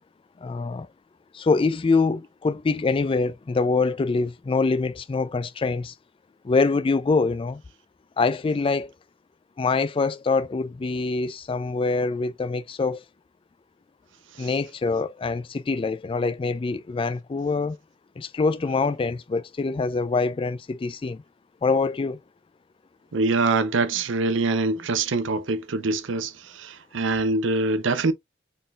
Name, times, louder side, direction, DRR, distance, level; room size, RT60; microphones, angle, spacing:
voice 1, 0.4-0.9 1.3-5.9 6.4-7.6 8.2-8.9 9.6-13.0 14.4-17.8 18.2-21.2 21.6-22.2, left 4 dB, 25° left, 0.3 m, -24 dB
voice 2, 23.1-28.1, right 3 dB, 70° right, 0.6 m, -24 dB
3.9 x 3.8 x 2.3 m
head